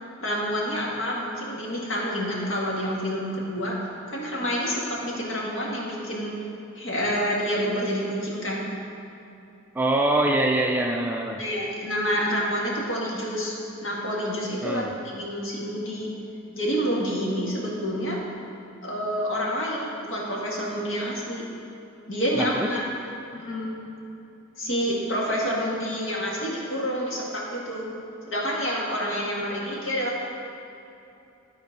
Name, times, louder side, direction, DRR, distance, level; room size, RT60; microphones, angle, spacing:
voice 1, 0.2-3.8 4.1-6.3 6.8-8.6 11.4-13.5 13.8-16.1 16.5-18.2 18.8-21.4 22.1-22.8 23.3-23.8 24.6-27.8 28.2-30.2, equal, 60° left, -4 dB, 1.8 m, -28 dB
voice 2, 9.7-11.4 14.6-15.0 22.3-22.8, right 1 dB, 10° right, 1 dB, 0.3 m, -24 dB
12.5 x 4.3 x 5.2 m, 2.9 s
head